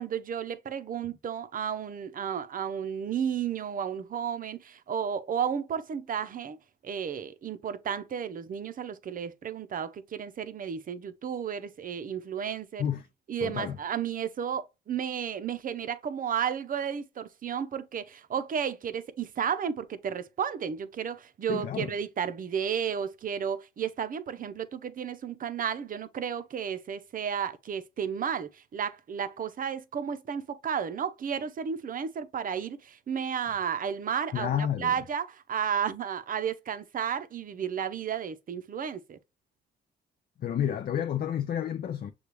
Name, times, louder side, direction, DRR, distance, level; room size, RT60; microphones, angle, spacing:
voice 1, 0.0-6.6 6.8-12.8 13.3-39.2, right 8 dB, 45° right, 0.6 m, -33 dB
voice 2, 13.4-13.8 21.5-21.9 34.3-34.9 40.4-42.1, left 9 dB, 50° left, 0.5 m, -30 dB
6.6 x 2.3 x 3.1 m
cardioid pair, 90°, 20 cm